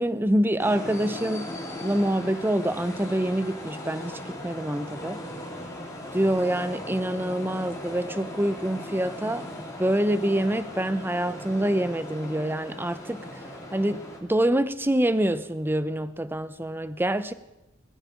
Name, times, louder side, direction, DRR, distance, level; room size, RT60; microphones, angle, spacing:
voice 1, 0.0-1.5 1.8-5.2 6.1-13.4 13.7-17.3, right 1 dB, 10° right, 0.6 m, -26 dB
sound 1, 0.6-14.2, left 1 dB, 15° left, 2.8 m, -38 dB
20.0 x 14.0 x 5.1 m
head